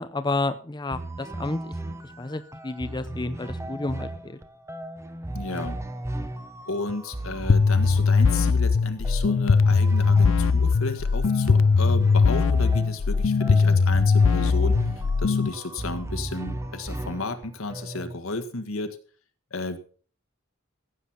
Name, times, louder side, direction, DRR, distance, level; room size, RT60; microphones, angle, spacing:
voice 1, 0.0-1.7 2.2-4.4, left 2 dB, 20° left, 11 dB, 0.6 m, -30 dB
sound 1, 0.9-18.2, right 1 dB, 15° right, 1.0 m, -36 dB
voice 2, 5.3-5.8 6.7-14.9 15.2-19.0 19.5-19.8, left 3 dB, 85° left, 8 dB, 1.8 m, -33 dB
sound 2, 7.5-15.5, left 4 dB, 65° left, 0.5 m, -20 dB
15.0 x 8.3 x 5.7 m, 0.42 s
head